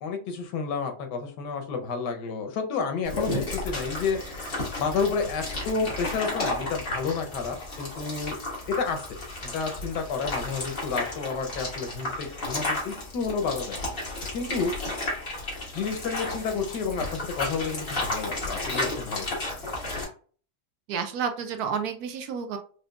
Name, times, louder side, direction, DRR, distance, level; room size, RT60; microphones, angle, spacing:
voice 1, 0.0-4.2 4.8-8.4 8.7-9.0 9.4-13.8 14.3-14.7 15.7-19.3, left 5 dB, 85° left, 5 dB, 1.4 m, -30 dB
sound 1, 3.0-20.0, left 2 dB, 35° left, 1.5 m, -33 dB
voice 2, 20.9-22.6, right 6 dB, 70° right, 7 dB, 1.0 m, -30 dB
4.8 x 2.3 x 2.3 m, 0.42 s
omnidirectional pair, 1.8 m